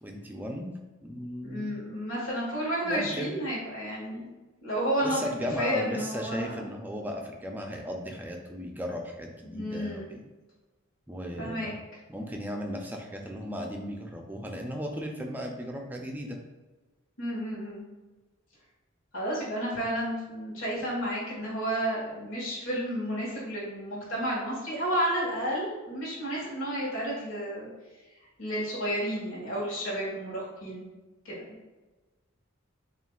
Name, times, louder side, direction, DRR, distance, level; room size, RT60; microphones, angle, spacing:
voice 1, 0.0-1.7 2.8-3.4 5.0-10.3 11.1-11.8 12.1-16.4, equal, 10° right, 1 dB, 0.4 m, -36 dB
voice 2, 1.4-4.3 4.6-5.2 5.6-6.7 9.4-10.1 11.3-11.7 17.2-17.8 19.1-27.7 28.4-30.8 31.2-31.4, equal, 75° left, -6 dB, 1.3 m, -31 dB
7.0 x 2.5 x 2.3 m, 1.2 s
head